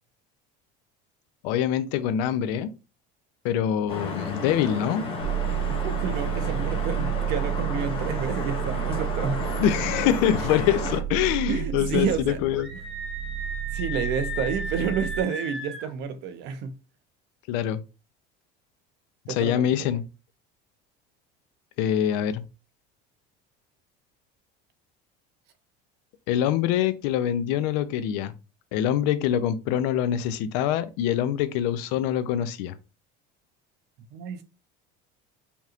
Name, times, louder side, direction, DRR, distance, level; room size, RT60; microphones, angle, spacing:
voice 1, 1.4-2.7 3.4-5.0 9.6-12.7 17.5-17.8 19.3-20.0 21.8-22.4 26.3-28.3 28.7-32.8, left 10 dB, 80° left, 0.6 m, -24 dB
Vehicle horn car horn honking / Traffic noise roadway noise, 3.9-11.0, left 3 dB, 25° left, 1.4 m, -32 dB
sound 1, 5.2-15.2, right 12 dB, 80° right, 1.1 m, -31 dB
voice 2, 5.6-9.6 11.5-12.4 13.7-16.8 19.3-19.9 34.1-34.4, right 7 dB, 55° right, 0.7 m, -30 dB
Screaming, 12.6-15.9, left 1 dB, ahead, 0.6 m, -35 dB
5.3 x 2.9 x 2.4 m
cardioid pair, 160°, 21 cm